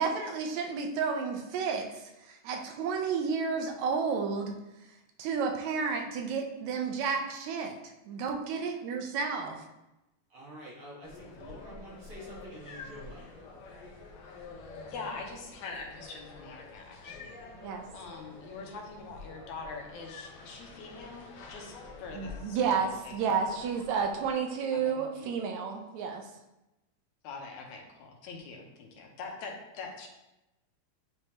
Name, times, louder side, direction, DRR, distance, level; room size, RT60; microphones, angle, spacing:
voice 1, 0.0-4.6 5.2-7.8 8.1-9.6 17.6-17.9 22.1-26.3, right 5 dB, 80° right, 3 dB, 2.0 m, -31 dB
voice 2, 10.3-13.3, right 1 dB, 55° right, -5 dB, 2.0 m, -47 dB
sound 1, 11.0-24.3, left 3 dB, 65° left, 1.4 m, -48 dB
voice 3, 14.9-17.4 17.9-21.7 22.0-23.2 24.9-25.3 27.2-30.1, left 4 dB, 85° left, 1 dB, 2.3 m, -43 dB
10.0 x 3.4 x 2.9 m, 0.95 s
omnidirectional pair, 3.3 m